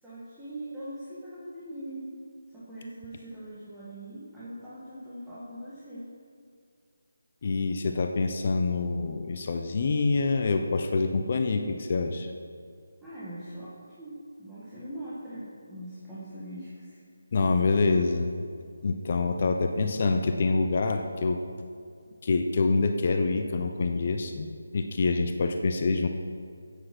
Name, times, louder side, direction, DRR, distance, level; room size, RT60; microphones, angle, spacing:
voice 1, 0.0-2.2 2.5-6.1 13.0-17.0, right 1 dB, 5° right, -12 dB, 1.8 m, -41 dB
voice 2, 7.4-12.3 17.3-18.3 18.8-21.4 22.2-24.5 24.7-26.1, left 3 dB, 40° left, 5 dB, 0.8 m, -26 dB
9.4 x 8.9 x 6.2 m, 2.3 s
figure-of-eight pair, 165°, 0 cm